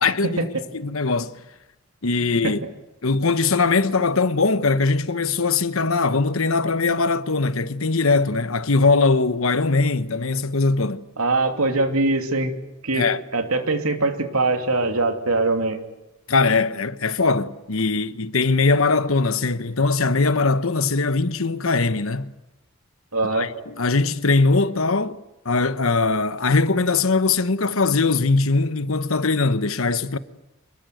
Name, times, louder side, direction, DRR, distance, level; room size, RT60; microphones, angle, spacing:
voice 1, 0.0-0.5 0.7-1.3 2.0-2.6 3.0-11.0 12.9-13.2 16.3-22.3 23.3-25.2 25.4-30.2, left 3 dB, 70° left, 1.1 m, -21 dB
voice 2, 11.2-12.6 12.8-13.1 13.3-15.8 23.1-23.5, right 2 dB, 85° right, 2.9 m, -22 dB
26.0 x 22.5 x 7.9 m
head